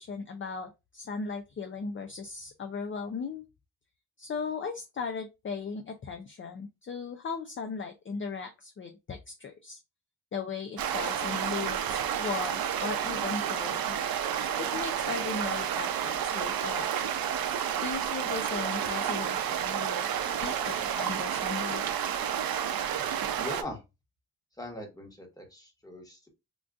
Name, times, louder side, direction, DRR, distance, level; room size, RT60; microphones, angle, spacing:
voice 1, 0.0-3.4 4.2-9.8 10.3-13.9 14.6-16.9 17.8-20.1 20.4-21.9, left 5 dB, 35° left, 5 dB, 0.4 m, -37 dB
sound 1, 10.8-23.6, right 9 dB, 90° right, 0.5 m, -30 dB
voice 2, 23.4-23.8 24.6-26.3, left 1 dB, 10° left, 2 dB, 1.1 m, -41 dB
3.7 x 2.4 x 2.3 m, 0.25 s
cardioid pair, 90°, 34 cm